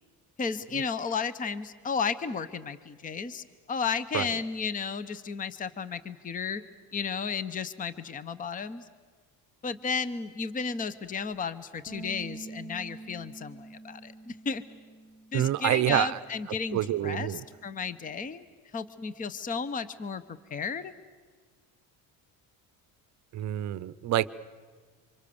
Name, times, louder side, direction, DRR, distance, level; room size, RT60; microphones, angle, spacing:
voice 1, 0.4-6.6 6.9-8.9 9.6-14.6 15.3-18.5 18.7-20.9, left 5 dB, 20° left, 15 dB, 0.7 m, -33 dB
Bass guitar, 11.9-18.1, right 3 dB, 15° right, 1.1 m, -47 dB
voice 2, 15.3-16.2 16.7-17.4 23.3-24.3, right 13 dB, 50° right, 18 dB, 0.7 m, -27 dB
27.5 x 25.5 x 7.0 m, 1.5 s
cardioid pair, 155°, 37 cm